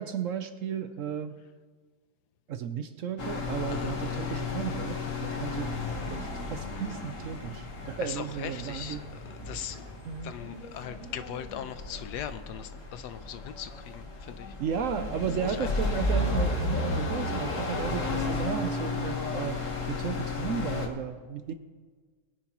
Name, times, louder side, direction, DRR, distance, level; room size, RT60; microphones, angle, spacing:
voice 1, 0.0-1.4 2.5-5.7 6.1-9.1 10.0-10.4 14.6-19.6 19.9-21.5, right 7 dB, 65° right, 10 dB, 0.8 m, -34 dB
sound 1, 3.2-20.9, left 2 dB, 50° left, 1.7 m, -33 dB
voice 2, 8.0-9.0 9.2-9.9 10.2-14.5 15.4-15.9, left 9 dB, 85° left, 11 dB, 1.3 m, -40 dB
21.0 x 9.9 x 3.0 m, 1.4 s
omnidirectional pair, 1.8 m